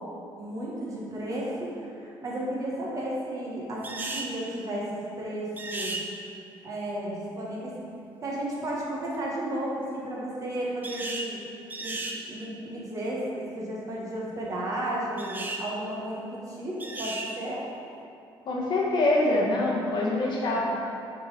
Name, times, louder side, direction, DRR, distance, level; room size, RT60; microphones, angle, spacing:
voice 1, 0.4-4.9 5.2-6.0 6.6-7.7 8.2-11.4 11.8-12.0 12.3-17.6, right 1 dB, 40° right, -5 dB, 1.4 m, -33 dB
sound 1, 3.8-4.3 5.6-6.0 10.8-11.3 11.7-12.2 15.2-15.6 16.8-17.3, right 2 dB, 20° right, 0.6 m, -34 dB
voice 2, 18.5-20.7, left 2 dB, 55° left, -3 dB, 1.2 m, -25 dB
5.7 x 3.8 x 4.9 m, 2.6 s
cardioid pair, 110°, 9 cm